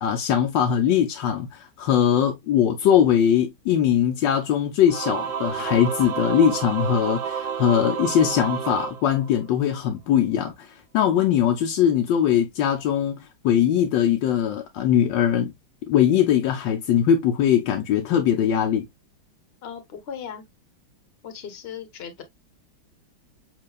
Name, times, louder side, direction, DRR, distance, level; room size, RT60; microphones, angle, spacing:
voice 1, 0.0-15.5 15.9-18.9, left 9 dB, 75° left, 1.3 m, -21 dB
Singing / Musical instrument, 4.9-9.7, right 7 dB, 80° right, 1.5 m, -30 dB
voice 2, 19.6-20.4 21.2-22.2, left 8 dB, 40° left, 1.1 m, -37 dB
7.5 x 2.8 x 2.3 m
omnidirectional pair, 2.1 m